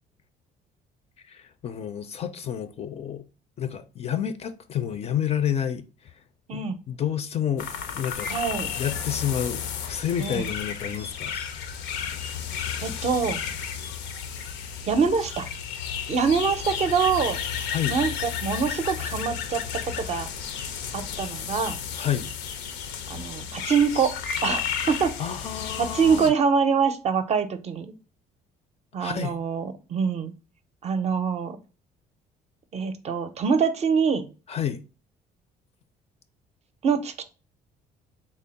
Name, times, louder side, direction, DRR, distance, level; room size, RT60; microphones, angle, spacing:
voice 1, 1.2-3.2 3.6-6.1 6.5-8.3 8.8-11.3 17.7-18.0 22.0-22.3 25.2-26.3 29.0-29.4 34.5-34.8, left 9 dB, 40° left, 0.4 m, -29 dB
sound 1, 7.6-26.3, left 8 dB, 90° left, 0.5 m, -33 dB
voice 2, 8.3-8.7 10.2-10.4 12.8-13.4 14.9-15.5 16.1-17.4 17.9-20.3 20.9-21.7 23.1-24.1 24.4-25.1 25.8-27.9 28.9-30.3 30.8-31.6 32.7-34.3 36.8-37.2, right 6 dB, 40° right, 0.5 m, -24 dB
3.6 x 2.0 x 3.8 m
cardioid pair, 110°, 17 cm